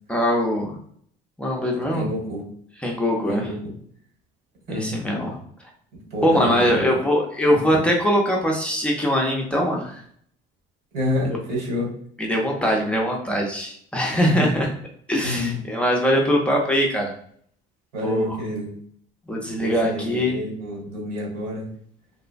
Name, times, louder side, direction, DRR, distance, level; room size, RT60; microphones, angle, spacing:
voice 1, 0.1-0.8 1.4-2.1 2.8-3.5 4.7-5.4 6.2-10.0 12.2-14.7 15.1-17.1 18.0-18.2 19.3-20.4, equal, 5° left, -1 dB, 0.5 m, -22 dB
voice 2, 1.8-2.4 3.3-3.7 4.7-5.0 5.9-7.0 7.5-7.9 10.9-11.9 14.2-14.6 15.2-15.6 17.9-18.7 19.5-21.7, left 1 dB, 85° right, -2 dB, 1.4 m, -29 dB
3.1 x 2.1 x 2.4 m, 0.62 s
cardioid pair, 120°, 16 cm